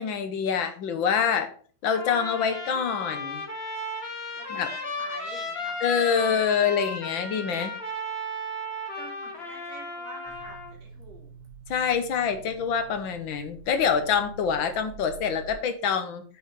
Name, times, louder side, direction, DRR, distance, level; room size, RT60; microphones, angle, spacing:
voice 1, 0.0-1.5 1.8-3.4 4.5-4.7 5.8-7.7 11.7-16.2, left 7 dB, 80° left, 8 dB, 1.1 m, -26 dB
Trumpet, 1.9-10.7, left 1 dB, 20° left, 2.2 m, -35 dB
voice 2, 4.4-5.9 9.0-11.3, right 3 dB, 60° right, 0 dB, 3.5 m, -46 dB
sound 1, 10.2-15.5, right 4 dB, 35° right, 2.8 m, -46 dB
8.6 x 5.5 x 5.2 m, 0.43 s
omnidirectional pair, 3.4 m